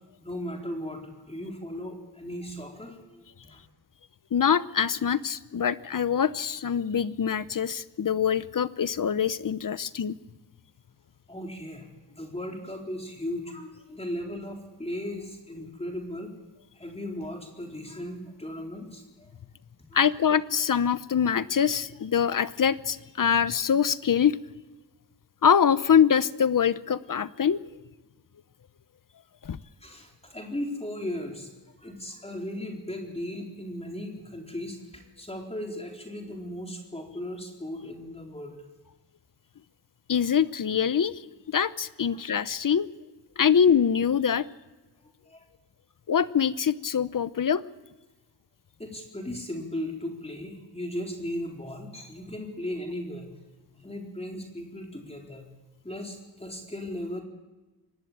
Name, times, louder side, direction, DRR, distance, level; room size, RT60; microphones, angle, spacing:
voice 1, 0.2-3.6 11.3-16.3 16.7-19.3 19.9-20.2 29.8-31.5 31.8-38.6 42.1-42.2 45.3-45.4 48.8-53.3 53.8-55.5 55.8-57.2, left 1 dB, 15° left, 1 dB, 4.2 m, -37 dB
voice 2, 4.3-10.2 19.9-24.4 25.4-27.6 29.4-29.6 40.1-41.2 41.5-42.9 43.4-44.5 46.1-47.6, left 7 dB, 50° left, 15 dB, 0.9 m, -24 dB
24.0 x 19.0 x 8.8 m, 1.1 s
wide cardioid pair, 95°, 41 cm